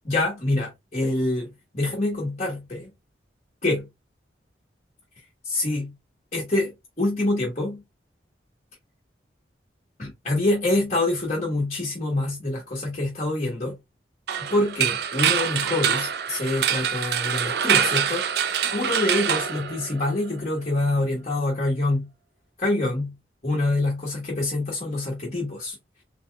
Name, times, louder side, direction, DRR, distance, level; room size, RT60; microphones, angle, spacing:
voice 1, 0.0-2.9 3.6-3.9 5.4-5.9 6.3-7.8 10.0-13.8 14.4-18.3 18.7-22.1 22.6-23.1 23.4-25.8, left 2 dB, 35° left, 1.2 m, -26 dB
sound 1, 14.3-20.3, right 8 dB, 60° right, 0.4 m, -25 dB
4.1 x 3.6 x 2.3 m
head